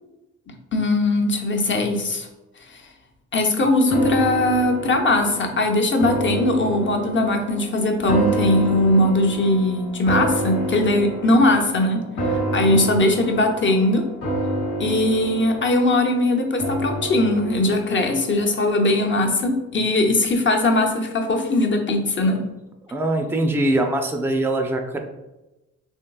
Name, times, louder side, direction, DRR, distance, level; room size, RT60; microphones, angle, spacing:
voice 1, 0.7-2.3 3.3-12.0 12.3-14.1 14.8-22.5, left 2 dB, 35° left, 3 dB, 0.7 m, -20 dB
sound 1, 3.9-19.2 19.6-19.7, right 2 dB, 70° left, 0.9 m, -29 dB
voice 2, 12.7-13.0 22.9-25.0, right 1 dB, 5° right, 4 dB, 0.4 m, -23 dB
3.6 x 2.5 x 2.3 m, 1.0 s
supercardioid pair, 55°, 33 cm